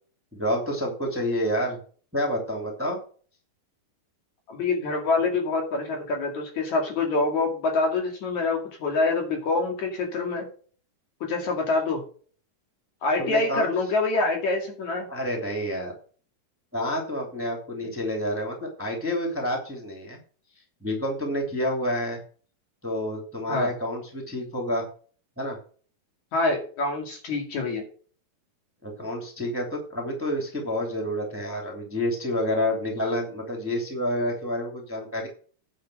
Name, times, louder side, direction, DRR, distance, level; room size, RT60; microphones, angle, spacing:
voice 1, 0.3-1.8 2.1-3.0 13.2-13.7 15.1-15.9 16.7-20.2 20.8-22.2 22.8-24.8 25.4-25.6 28.8-35.3, left 1 dB, 5° right, 0 dB, 2.4 m, -28 dB
voice 2, 4.5-10.5 11.2-12.0 13.0-15.1 17.8-17.9 23.5-23.7 26.3-27.8, left 3 dB, 55° left, 2 dB, 3.6 m, -26 dB
10.0 x 6.3 x 6.4 m, 0.42 s
omnidirectional pair, 4.0 m